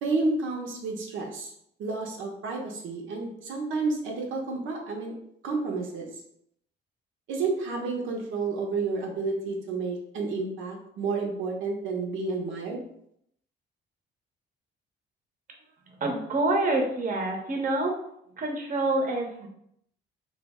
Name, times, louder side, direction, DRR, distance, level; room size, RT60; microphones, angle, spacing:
voice 1, 0.0-1.5 1.8-5.1 5.4-6.1 7.3-12.8, right 3 dB, 80° right, 0 dB, 0.6 m, -30 dB
voice 2, 16.0-17.9 18.4-19.5, right 2 dB, 45° right, 2 dB, 0.7 m, -27 dB
3.3 x 2.0 x 3.5 m, 0.72 s
cardioid pair, 90°, 20 cm